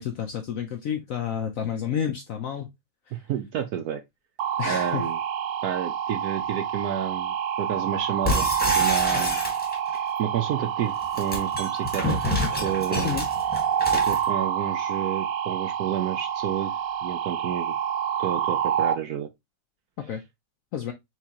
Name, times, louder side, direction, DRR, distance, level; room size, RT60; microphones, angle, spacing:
voice 1, 0.0-2.7 4.6-5.1 13.0-13.3 20.0-20.2 20.7-20.9, left 8 dB, 70° left, 0.8 m, -30 dB
voice 2, 3.1-4.0 4.7-5.2 5.6-8.5 8.7-9.4 9.9-12.2 12.6-13.2 14.0-16.7 17.0-17.7 18.2-19.3, right 10 dB, 70° right, 0.9 m, -30 dB
sound 1, 4.4-18.9, right 8 dB, 90° right, 1.4 m, -27 dB
sound 2, 8.2-10.0 10.9-14.2, left 2 dB, 5° left, 1.1 m, -28 dB
4.6 x 3.6 x 2.8 m
omnidirectional pair, 2.0 m